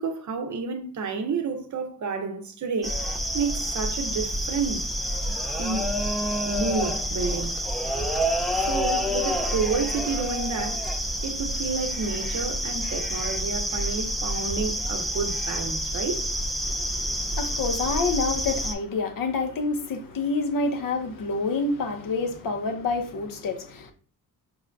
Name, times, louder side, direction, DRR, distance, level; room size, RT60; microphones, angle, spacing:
voice 1, 0.0-3.0 3.3-4.9 5.6-6.0 6.4-7.6 8.5-10.9 11.2-16.2, right 5 dB, 50° right, 0.7 m, -30 dB
sound 1, 2.8-18.7, equal, ahead, 0.4 m, -28 dB
voice 2, 16.6-23.9, left 3 dB, 60° left, 0.7 m, -28 dB
5.4 x 2.1 x 2.5 m
cardioid pair, 85°, 38 cm